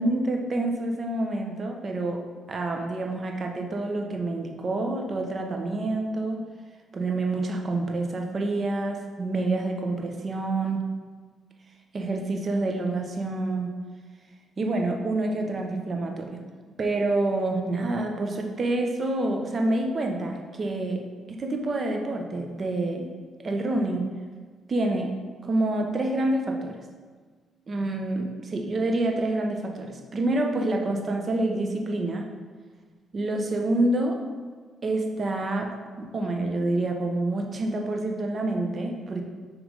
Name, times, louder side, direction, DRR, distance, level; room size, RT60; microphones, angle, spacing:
voice 1, 0.0-2.2 2.5-6.4 6.9-10.8 11.9-13.7 14.6-16.4 16.8-21.0 21.3-23.1 23.4-24.0 24.7-25.1 25.4-26.8 27.7-32.3 33.1-34.2 34.8-35.7 36.0-39.3, right 2 dB, 40° right, 2 dB, 0.9 m, -27 dB
6.3 x 3.4 x 5.3 m, 1.5 s
cardioid pair, 90°, 0 cm